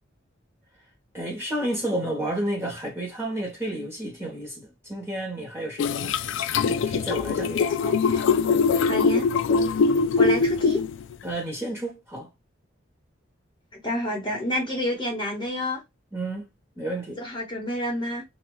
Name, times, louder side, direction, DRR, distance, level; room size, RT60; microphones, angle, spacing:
voice 1, 1.1-6.2 6.6-7.7 11.2-12.3 16.1-17.2, right 1 dB, 15° right, 1.4 m, -31 dB
sound 1, 5.8-11.1, left 5 dB, 70° left, 0.3 m, -22 dB
voice 2, 8.8-9.3 10.2-10.8 13.8-15.8 17.2-18.2, left 1 dB, 25° left, 1.1 m, -28 dB
2.8 x 2.7 x 3.1 m
head